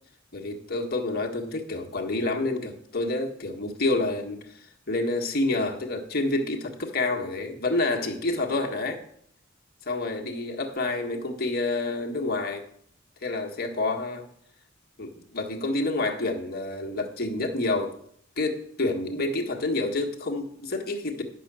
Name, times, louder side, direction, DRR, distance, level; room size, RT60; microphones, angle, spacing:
voice 1, 0.3-9.0 9.8-12.6 13.2-14.3 15.0-17.9 18.4-21.2, left 2 dB, 50° left, 2 dB, 1.6 m, -28 dB
11.0 x 5.9 x 7.5 m, 0.67 s
head